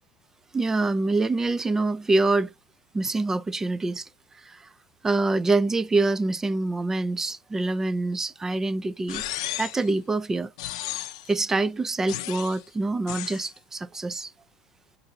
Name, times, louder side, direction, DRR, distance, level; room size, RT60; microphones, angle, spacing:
voice 1, 0.5-2.5 2.9-4.1 4.5-4.6 5.0-9.2 9.6-10.5 11.3-14.3, right 2 dB, 15° right, 0.3 m, -25 dB
sound 1, 9.1-9.9 10.6-11.3 12.1-12.6 13.1-13.4, left 14 dB, 80° left, 0.5 m, -34 dB
4.0 x 2.6 x 3.9 m
supercardioid pair, 115°, 3 cm